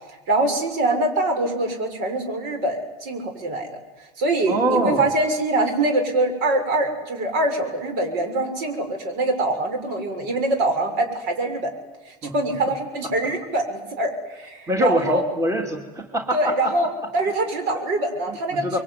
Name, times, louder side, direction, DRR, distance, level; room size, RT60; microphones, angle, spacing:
voice 1, 0.3-3.7 4.2-11.7 12.1-15.2 16.3-16.9 17.1-18.7, right 2 dB, 60° right, 5 dB, 6.6 m, -24 dB
voice 2, 4.5-5.1 12.2-12.3 14.7-16.7 18.3-18.8, right 1 dB, 15° right, 4 dB, 2.9 m, -24 dB
24.5 x 23.0 x 9.6 m, 1.1 s
supercardioid pair, 100°, 20 cm